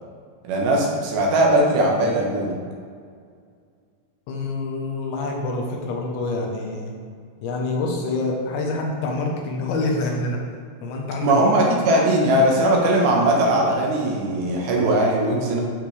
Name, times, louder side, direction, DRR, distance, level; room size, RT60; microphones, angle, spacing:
voice 1, 0.5-2.6 11.2-15.6, right 1 dB, 75° right, -1 dB, 3.2 m, -19 dB
voice 2, 4.3-6.9 7.4-10.4 10.8-11.5, left 2 dB, 80° left, 0 dB, 3.3 m, -26 dB
12.5 x 5.8 x 3.4 m, 2.1 s
omnidirectional pair, 5.4 m